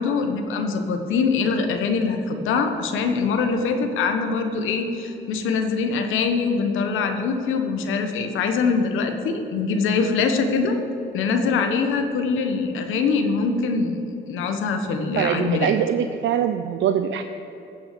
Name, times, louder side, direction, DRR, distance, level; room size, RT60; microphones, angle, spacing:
voice 1, 0.0-10.8 11.1-15.7, left 4 dB, 85° left, 6 dB, 1.2 m, -23 dB
voice 2, 15.0-17.2, right 9 dB, 70° right, 8 dB, 0.5 m, -23 dB
15.5 x 6.1 x 6.8 m, 3.0 s
cardioid pair, 90°, 20 cm